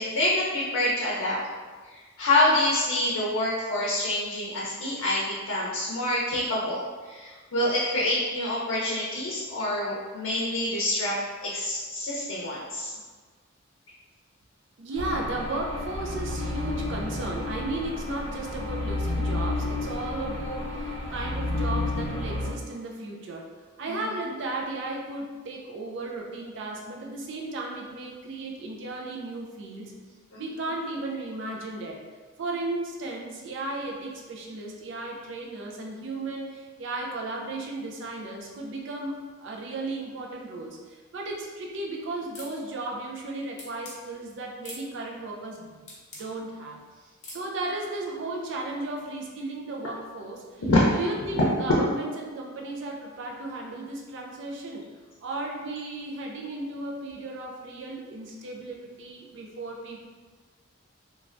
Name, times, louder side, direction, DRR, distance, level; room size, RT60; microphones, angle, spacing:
voice 1, 0.0-1.4 1.9-11.2 11.4-12.9 30.3-30.4 50.6-50.8 51.3-51.8, left 1 dB, 90° left, -5 dB, 0.5 m, -26 dB
voice 2, 14.8-23.5 23.8-29.9 30.3-32.0 32.4-45.8 46.1-46.8 47.3-50.6 50.9-54.9 55.2-60.0, right 2 dB, 60° right, 0 dB, 0.4 m, -35 dB
sound 1, 14.9-22.5, left 2 dB, 80° right, 1.0 m, -31 dB
sound 2, 42.4-42.6 43.6-44.0 44.6-44.9 45.9-46.3 47.2-47.5, left 2 dB, 35° left, 0.6 m, -42 dB
3.2 x 2.3 x 2.5 m, 1.4 s
head